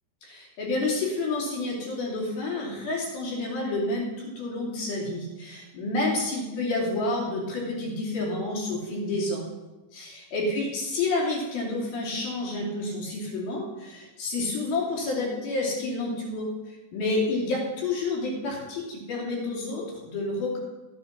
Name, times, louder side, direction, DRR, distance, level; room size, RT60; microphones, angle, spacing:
voice 1, 0.2-9.5 9.9-20.6, left 2 dB, 60° left, -3 dB, 4.5 m, -29 dB
14.5 x 7.9 x 5.8 m, 1.1 s
omnidirectional pair, 4.9 m